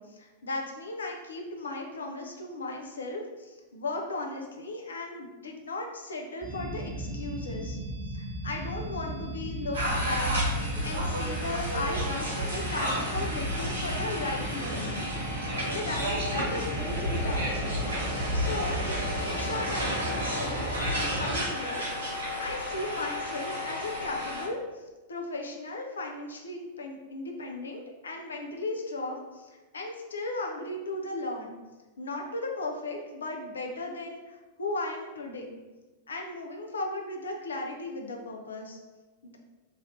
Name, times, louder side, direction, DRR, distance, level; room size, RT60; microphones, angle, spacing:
voice 1, 0.0-7.8 8.1-15.0 15.5-17.9 18.3-20.6 21.0-31.5 32.0-35.6 36.1-38.8 39.2-39.4, left 2 dB, 75° left, 1 dB, 0.5 m, -36 dB
sound 1, 6.4-21.4, right 1 dB, ahead, 1.1 m, -36 dB
sound 2, 9.7-24.4, equal, 80° right, 0.8 m, -32 dB
2.7 x 2.5 x 3.1 m, 1.2 s
figure-of-eight pair, 95°, 0 cm